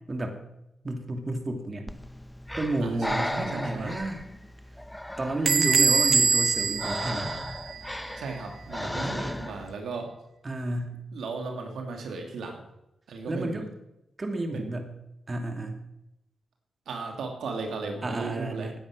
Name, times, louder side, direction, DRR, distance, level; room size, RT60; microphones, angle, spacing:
voice 1, 0.1-0.4 0.8-1.9 2.6-4.2 5.2-7.3 10.4-10.9 13.3-13.7 14.2-14.9 15.3-15.8 18.0-18.9, right 2 dB, 35° right, 5 dB, 2.6 m, -31 dB
Breathing, 1.9-9.7, left 1 dB, 10° left, 1.0 m, -36 dB
voice 2, 2.8-4.0 8.2-10.1 11.1-12.6 13.1-13.6 14.5-14.7 16.9-18.7, right 3 dB, 80° right, 3 dB, 2.6 m, -36 dB
Bell / Door, 5.5-8.0, right 5 dB, 60° right, 1.1 m, -24 dB
17.5 x 9.8 x 6.3 m, 0.88 s
cardioid pair, 65°, 0 cm